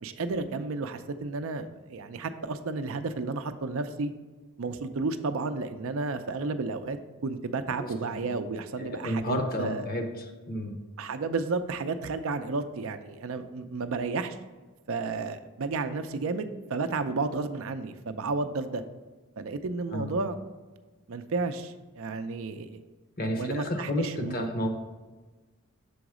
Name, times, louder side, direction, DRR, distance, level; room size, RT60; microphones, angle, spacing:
voice 1, 0.0-4.1 4.6-9.8 11.0-14.4 14.9-18.8 19.4-20.4 21.1-22.8 23.4-24.5, right 3 dB, 65° right, 9 dB, 0.5 m, -32 dB
voice 2, 7.8-8.2 8.8-10.8 19.9-20.1 23.2-24.7, left 1 dB, 45° left, 5 dB, 0.8 m, -31 dB
7.0 x 4.0 x 4.8 m, 1.3 s
head